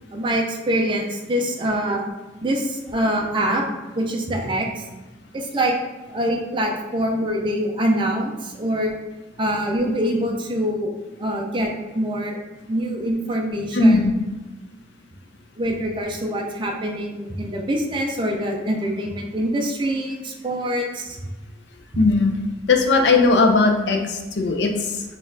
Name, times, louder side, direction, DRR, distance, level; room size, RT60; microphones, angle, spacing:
voice 1, 0.1-2.1 2.4-3.6 3.9-4.8 5.3-5.8 6.1-8.9 9.4-10.9 11.2-12.4 12.7-14.0 15.6-21.2, right 1 dB, 25° right, 1 dB, 0.4 m, -24 dB
voice 2, 13.7-14.1 22.0-22.3 22.7-25.0, left 3 dB, 65° left, 3 dB, 0.5 m, -18 dB
4.1 x 2.4 x 3.7 m, 1.1 s
head